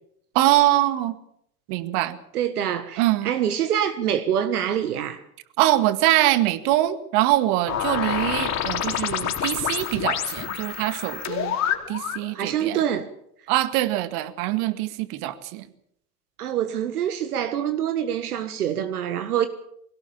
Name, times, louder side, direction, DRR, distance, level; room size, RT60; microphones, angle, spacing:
voice 1, 0.4-1.1 1.7-2.2 3.0-3.3 5.6-11.6 11.9-12.8 13.5-15.7, right 15 dB, 55° right, 2.0 m, -23 dB
voice 2, 2.3-5.2 12.3-13.1 16.4-19.5, right 9 dB, 75° right, 1.7 m, -25 dB
sound 1, 7.7-12.3, left 9 dB, 35° left, 3.7 m, -27 dB
21.5 x 18.5 x 7.3 m
hypercardioid pair, 90°, 46 cm